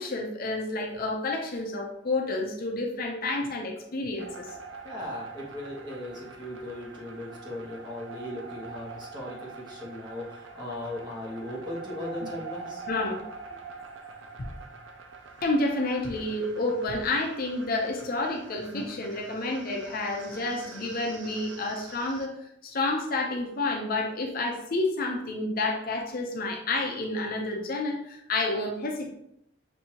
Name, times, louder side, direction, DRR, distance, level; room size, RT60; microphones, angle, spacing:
voice 1, 0.0-4.5 12.2-12.3 12.9-13.2 15.4-22.3 22.6-29.1, left 2 dB, 50° left, 1 dB, 0.7 m, -29 dB
sound 1, 4.2-22.3, right 4 dB, 75° right, 0.6 m, -45 dB
voice 2, 4.8-12.9, left 1 dB, 25° right, -4 dB, 1.2 m, -38 dB
6.4 x 2.7 x 2.9 m, 0.76 s
head